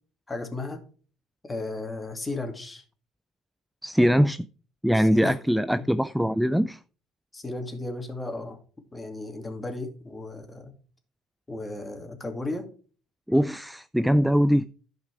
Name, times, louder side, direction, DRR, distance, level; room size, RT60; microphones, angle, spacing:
voice 1, 0.3-0.8 1.5-2.8 4.9-5.4 5.8-5.9 7.3-8.6 8.9-10.7 11.5-12.7, left 2 dB, 20° left, 2.5 m, -35 dB
voice 2, 3.8-4.5 4.8-6.8 13.3-14.7, equal, ahead, 0.4 m, -22 dB
11.5 x 5.2 x 4.8 m
hypercardioid pair, 75°, 0 cm